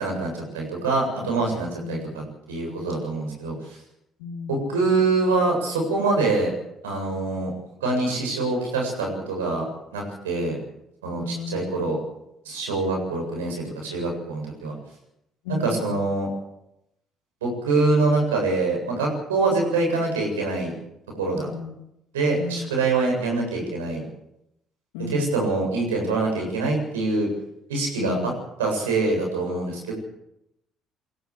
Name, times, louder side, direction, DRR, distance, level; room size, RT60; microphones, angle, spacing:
voice 1, 0.0-3.8 4.5-6.5 6.8-7.5 7.8-9.6 9.9-10.6 11.0-12.0 12.5-14.7 15.5-16.3 17.4-20.7 21.2-21.5 22.1-24.0 25.1-27.3 27.7-28.2 28.6-29.9, right 3 dB, 90° right, 0 dB, 7.6 m, -25 dB
voice 2, 1.2-1.5 1.8-2.2 3.3-3.4 4.2-4.8 11.1-11.9 15.4-16.0 19.6-19.7 21.5-21.9 22.4-22.8 24.9-25.4 28.0-28.4, left 4 dB, 80° left, 5 dB, 2.7 m, -35 dB
22.5 x 16.5 x 8.3 m, 0.82 s
hypercardioid pair, 55°, 0 cm